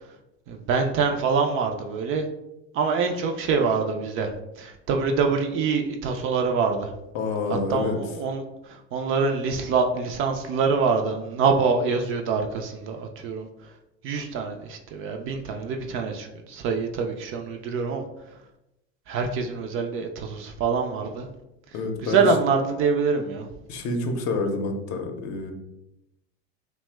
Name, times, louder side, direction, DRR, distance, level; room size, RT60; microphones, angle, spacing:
voice 1, 0.5-2.3 2.7-4.3 4.6-6.9 7.5-13.5 14.0-18.0 19.1-21.3 22.0-23.5, right 5 dB, 40° right, 4 dB, 0.4 m, -25 dB
voice 2, 7.1-8.0 21.7-22.3 23.7-25.5, left 3 dB, 55° left, 4 dB, 0.6 m, -28 dB
2.8 x 2.1 x 3.2 m, 0.88 s
hypercardioid pair, 95°, 35 cm